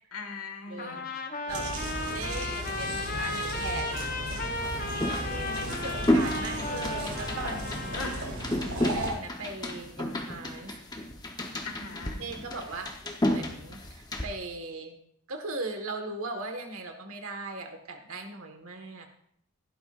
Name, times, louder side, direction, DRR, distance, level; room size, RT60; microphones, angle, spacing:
voice 1, 0.1-1.1 7.9-8.3 11.6-12.2, left 4 dB, 80° left, 4 dB, 2.0 m, -39 dB
voice 2, 0.7-1.0 1.4-1.7 2.1-4.7 5.0-8.0 8.5-10.7 12.2-12.9 13.3-15.0 15.3-19.1, right 2 dB, 70° right, 5 dB, 1.7 m, -39 dB
Trumpet, 0.8-8.2, left 2 dB, 40° left, 1.0 m, -35 dB
sound 1, 1.5-9.1, right 1 dB, 85° right, 4.0 m, -36 dB
sound 2, 4.5-14.3, left 1 dB, 20° left, 1.0 m, -32 dB
16.0 x 12.0 x 2.6 m, 0.70 s
head